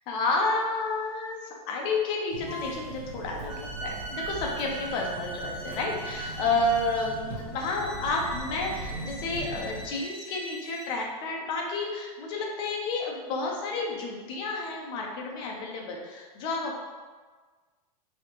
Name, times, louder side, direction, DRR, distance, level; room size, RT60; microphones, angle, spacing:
voice 1, 0.1-16.8, left 3 dB, 25° left, 0 dB, 0.5 m, -30 dB
sound 1, 2.3-9.9, right 3 dB, 60° right, 0.7 m, -40 dB
sound 2, 2.5-3.0 3.5-11.0, right 2 dB, 40° left, 1.0 m, -40 dB
Chewing mastication, 2.9-3.8 4.1-4.9 5.4-5.9 6.4-7.9, right 3 dB, 40° right, 1.3 m, -47 dB
4.1 x 2.8 x 3.0 m, 1.4 s
supercardioid pair, 165°, 20 cm